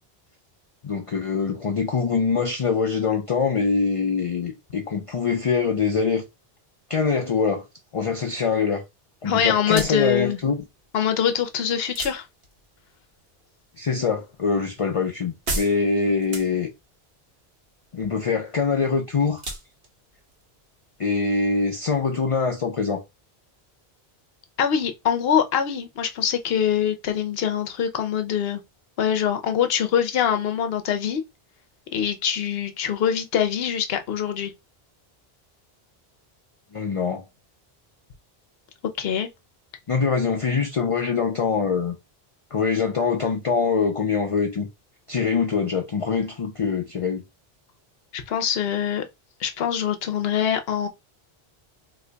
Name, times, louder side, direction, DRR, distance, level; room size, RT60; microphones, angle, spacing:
voice 1, 0.8-6.2 6.9-7.6 7.9-8.8 9.2-10.6 13.8-16.7 17.9-19.4 21.0-23.0 36.7-37.3 39.9-42.0 42.5-44.7 45.1-47.2, left 5 dB, 45° left, 0.5 m, -24 dB
voice 2, 9.3-10.4 10.9-12.2 24.6-28.6 29.0-31.2 31.9-34.5 39.0-39.3 48.1-49.0 49.4-50.9, left 8 dB, 75° left, 0.8 m, -24 dB
sound 1, 9.5-21.6, right 2 dB, 70° right, 1.3 m, -39 dB
2.9 x 2.2 x 3.8 m
omnidirectional pair, 1.0 m